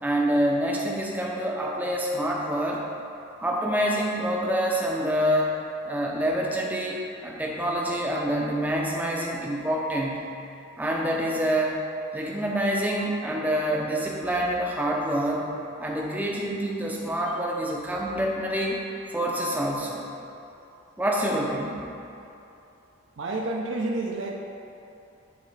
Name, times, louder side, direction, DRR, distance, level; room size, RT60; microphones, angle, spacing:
voice 1, 0.0-2.8 3.4-5.5 5.8-7.0 7.2-10.3 10.8-11.8 12.1-15.5 15.8-18.8 19.1-20.0 21.0-21.8, equal, 10° right, -2 dB, 0.5 m, -26 dB
voice 2, 23.2-24.3, right 2 dB, 60° right, 0 dB, 0.5 m, -29 dB
8.6 x 3.8 x 3.3 m, 2.8 s
head